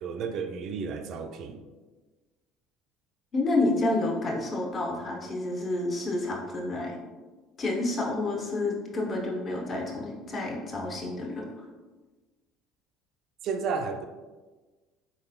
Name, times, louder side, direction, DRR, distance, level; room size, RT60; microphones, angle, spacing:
voice 1, 0.0-1.6 13.4-14.1, right 5 dB, 55° right, 6 dB, 0.4 m, -32 dB
voice 2, 3.3-6.9 7.6-11.7, left 2 dB, 40° left, 0 dB, 0.9 m, -29 dB
4.0 x 3.6 x 2.3 m, 1.3 s
hypercardioid pair, 70°, 0 cm